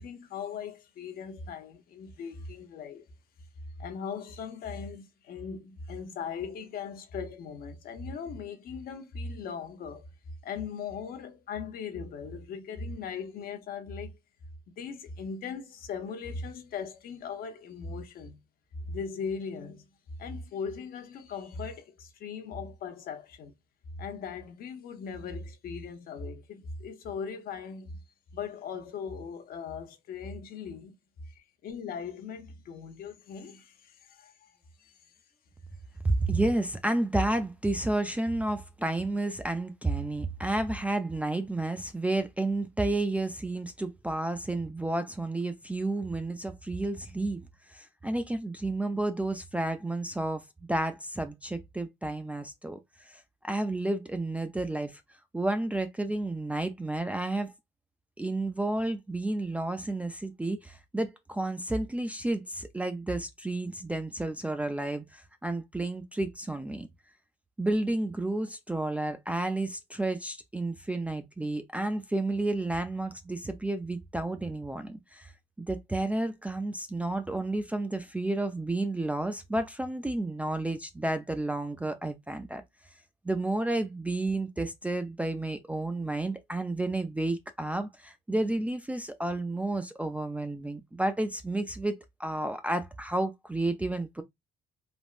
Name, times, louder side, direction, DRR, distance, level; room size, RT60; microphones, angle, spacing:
voice 1, 0.0-3.0 3.8-10.1 10.4-14.2 14.7-18.4 18.7-19.9 20.2-23.5 23.9-28.0 28.3-30.9 31.3-34.9, left 5 dB, 60° left, 0.7 m, -39 dB
voice 2, 36.0-47.4 47.7-55.0 55.3-57.5 58.2-66.9 67.6-75.3 75.6-82.6 83.2-94.2, right 2 dB, 10° right, 0.3 m, -31 dB
3.3 x 2.1 x 2.4 m
cardioid pair, 110°, 17 cm